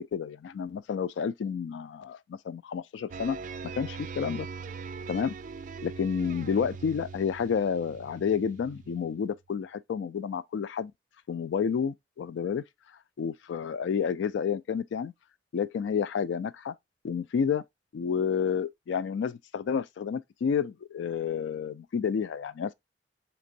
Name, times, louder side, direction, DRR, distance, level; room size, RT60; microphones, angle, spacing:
voice 1, 0.0-3.4 3.8-4.5 5.1-5.3 5.8-10.9 11.3-12.6 13.2-15.1 15.5-16.7 17.0-17.6 17.9-22.7, left 6 dB, 85° left, 0.3 m, -30 dB
sound 1, 3.1-9.3, right 5 dB, 45° right, 0.4 m, -41 dB
4.3 x 3.0 x 2.6 m
head